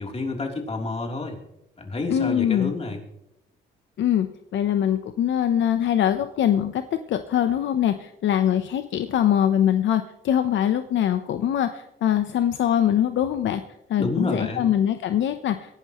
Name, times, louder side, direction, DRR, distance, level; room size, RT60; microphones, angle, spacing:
voice 1, 0.0-1.4 1.8-3.0 14.0-14.7, left 2 dB, 30° left, 2 dB, 3.4 m, -29 dB
voice 2, 2.1-2.7 4.0-4.3 4.5-13.6 13.9-15.8, left 10 dB, 70° left, 9 dB, 0.8 m, -23 dB
23.5 x 11.5 x 3.1 m, 0.82 s
cardioid pair, 90°, 20 cm